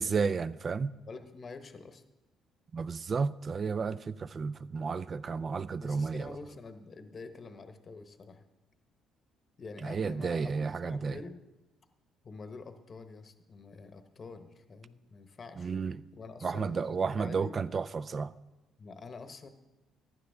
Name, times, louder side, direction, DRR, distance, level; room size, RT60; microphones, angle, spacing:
voice 1, 0.0-0.9 2.7-6.3 9.8-11.2 15.6-16.0 16.4-18.3, right 5 dB, 35° right, 0.4 m, -32 dB
voice 2, 0.9-2.0 5.8-8.4 9.6-11.4 12.2-15.7 16.1-17.5 18.8-19.5, left 4 dB, 40° left, 0.9 m, -47 dB
15.0 x 11.0 x 3.5 m
cardioid pair, 105°, 0 cm